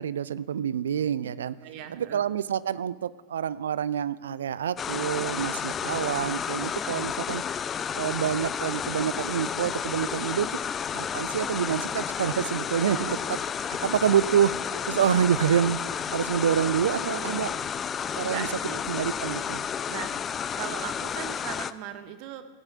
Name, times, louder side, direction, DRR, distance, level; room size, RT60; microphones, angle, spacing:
voice 1, 0.0-1.6 1.9-7.4 7.9-10.5 10.9-13.4 13.6-17.5 18.2-18.5 18.9-19.7, right 9 dB, 65° right, 18 dB, 0.4 m, -27 dB
voice 2, 1.6-2.2 12.9-13.2 16.9-17.7 18.2-18.8 19.9-20.1 20.5-22.4, right 10 dB, 45° right, 10 dB, 1.1 m, -39 dB
sound 1, 4.8-21.7, left 7 dB, 25° left, 0.4 m, -31 dB
17.0 x 6.5 x 7.2 m, 1.3 s
figure-of-eight pair, 90°, 0 cm